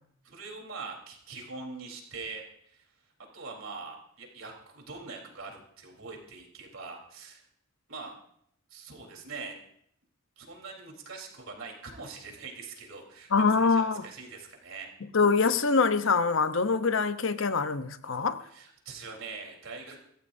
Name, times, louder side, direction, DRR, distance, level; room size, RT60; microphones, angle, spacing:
voice 1, 0.2-2.9 3.3-7.4 7.9-8.2 8.7-9.6 10.4-14.9 18.4-20.0, right 4 dB, 85° right, 0 dB, 3.9 m, -43 dB
voice 2, 13.3-14.0 15.1-18.4, left 4 dB, 70° left, 10 dB, 0.9 m, -24 dB
24.5 x 15.0 x 2.7 m, 0.68 s
head